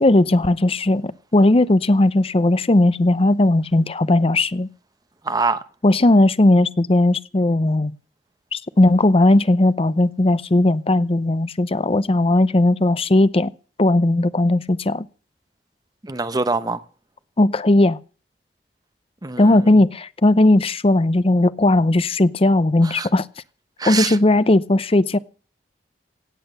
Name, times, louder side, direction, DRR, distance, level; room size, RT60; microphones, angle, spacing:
voice 1, 0.0-4.7 5.8-7.9 8.5-13.5 13.8-15.1 17.4-18.0 19.4-23.3 23.9-25.2, left 2 dB, 35° left, 0.7 m, -17 dB
voice 2, 5.2-5.6 16.0-16.8 19.2-19.8 22.8-23.1 23.8-24.2, right 3 dB, 20° right, 0.9 m, -24 dB
17.0 x 8.6 x 6.9 m
head